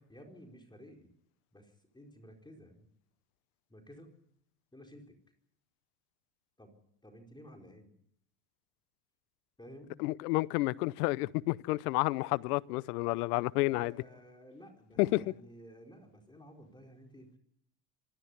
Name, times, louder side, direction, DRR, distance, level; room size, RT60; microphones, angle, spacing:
voice 1, 0.1-1.1 1.5-2.9 3.7-4.1 4.7-5.1 6.6-7.9 9.6-9.9 13.6-17.4, equal, 10° left, 4.5 m, -53 dB
voice 2, 10.0-13.9 15.0-15.2, left 21 dB, 75° left, 0.8 m, -30 dB
26.5 x 12.5 x 9.7 m
hypercardioid pair, 85°, 46 cm